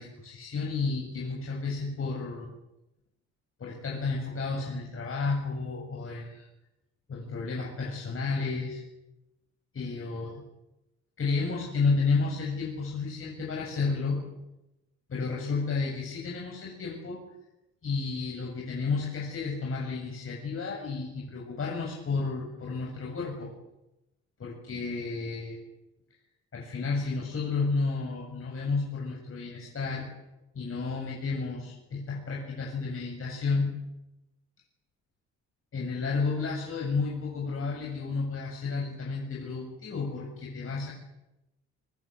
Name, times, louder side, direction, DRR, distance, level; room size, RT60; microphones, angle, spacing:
voice 1, 0.0-2.5 3.6-6.5 7.1-8.8 9.7-10.4 11.2-14.2 15.1-17.2 17.8-23.5 24.4-25.6 26.5-30.1 30.5-33.7 35.7-40.9, left 4 dB, 45° left, -1 dB, 7.7 m, -31 dB
25.0 x 25.0 x 8.3 m, 0.93 s
cardioid pair, 90°, 30 cm